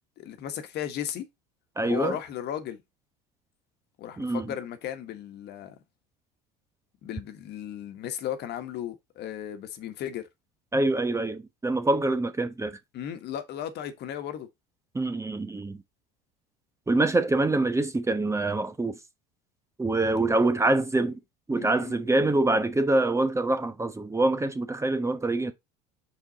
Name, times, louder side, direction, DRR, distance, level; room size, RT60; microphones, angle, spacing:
voice 1, 0.2-1.3 1.8-2.8 4.0-5.8 7.0-10.3 12.9-14.5 21.5-22.0, left 10 dB, 55° left, 1.4 m, -35 dB
voice 2, 1.8-2.2 4.2-4.5 10.7-12.8 14.9-15.8 16.9-19.0 19.8-21.2 21.5-25.5, right 2 dB, 15° right, 1.1 m, -25 dB
6.2 x 4.9 x 4.0 m
supercardioid pair, 90°, 21 cm